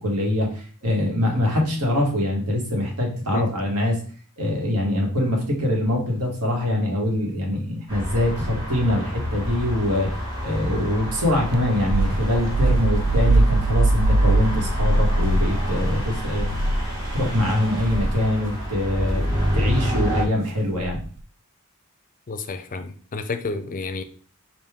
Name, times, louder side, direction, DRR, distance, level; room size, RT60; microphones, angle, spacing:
voice 1, 0.0-4.0 4.4-10.1 10.4-16.5 17.1-21.0, left 1 dB, 80° right, 0 dB, 1.5 m, -23 dB
sound 1, 7.9-20.2, equal, 20° right, 2.1 m, -28 dB
sound 2, 11.5-17.4 17.8-18.1 19.3-19.6 20.8-21.2, right 2 dB, 55° right, 0.4 m, -22 dB
voice 2, 22.3-24.0, left 4 dB, 40° left, 9 dB, 0.5 m, -30 dB
5.1 x 2.5 x 3.6 m, 0.43 s
head